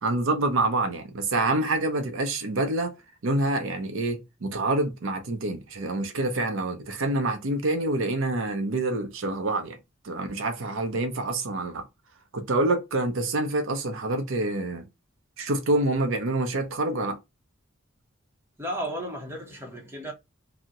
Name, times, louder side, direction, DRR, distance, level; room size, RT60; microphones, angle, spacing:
voice 1, 0.0-2.9 3.2-9.8 10.0-11.8 12.3-14.9 15.4-17.2, right 2 dB, 70° right, 0.6 m, -27 dB
voice 2, 18.6-20.1, right 1 dB, 10° right, 0.8 m, -34 dB
2.7 x 2.1 x 3.6 m
head